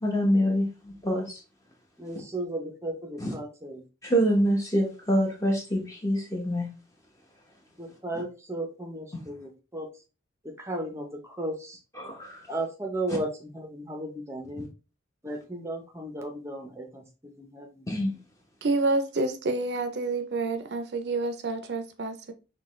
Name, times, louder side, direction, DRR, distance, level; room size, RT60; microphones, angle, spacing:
voice 1, 0.0-1.4 3.2-3.3 4.0-6.7 9.1-9.2 12.0-12.4 13.1-13.2 14.6-14.7 17.9-18.2, equal, 15° left, 1.0 m, -26 dB
voice 2, 2.0-3.8 7.8-9.9 10.6-11.8 12.5-14.7 15.2-17.9, right 1 dB, 15° right, 0.6 m, -35 dB
voice 3, 18.6-22.3, right 3 dB, 60° right, 0.5 m, -28 dB
6.1 x 2.3 x 3.1 m
head